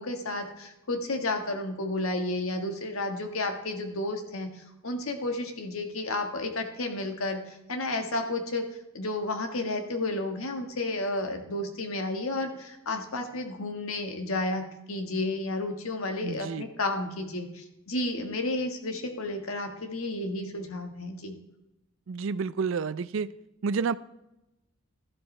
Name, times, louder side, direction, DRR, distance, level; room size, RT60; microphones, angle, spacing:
voice 1, 0.0-8.6 8.9-21.3, left 2 dB, 85° left, 5 dB, 1.5 m, -32 dB
voice 2, 16.2-16.7 22.1-23.3 23.6-23.9, right 5 dB, 65° right, 16 dB, 0.4 m, -29 dB
12.5 x 11.5 x 3.2 m, 0.91 s
head